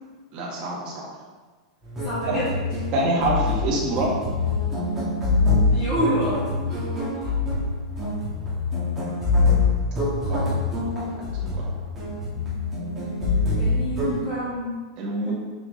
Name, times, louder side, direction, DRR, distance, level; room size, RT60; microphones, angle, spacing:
voice 1, 0.3-1.1 2.3-2.4 2.9-4.1 10.3-10.6 11.1-11.8 15.0-15.3, right 1 dB, 30° right, -6 dB, 1.7 m, -26 dB
sound 1, 1.8-14.2, left 3 dB, 10° right, 1.8 m, -25 dB
voice 2, 2.0-2.6 5.7-7.3 13.6-14.8 15.2-15.3, equal, 25° left, -11 dB, 2.0 m, -28 dB
6.0 x 6.0 x 3.2 m, 1.4 s
supercardioid pair, 160°, 3 cm